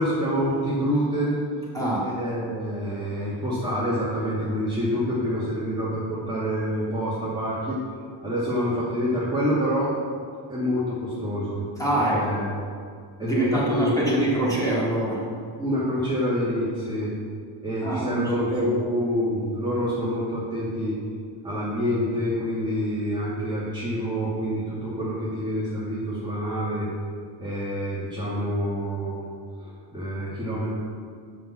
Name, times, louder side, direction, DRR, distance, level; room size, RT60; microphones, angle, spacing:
voice 1, 0.0-1.4 2.0-7.8 8.2-9.9 10.5-11.6 12.1-12.5 13.2-14.1 15.6-17.1 17.6-21.0 21.4-26.9 27.4-29.2 29.6-30.7, equal, 10° right, -10 dB, 2.2 m, -27 dB
voice 2, 1.7-2.2 11.8-12.4 13.2-15.2 17.8-18.8, right 1 dB, 5° left, -7 dB, 2.8 m, -25 dB
7.3 x 6.3 x 7.3 m, 2.2 s
cardioid pair, 125°, 47 cm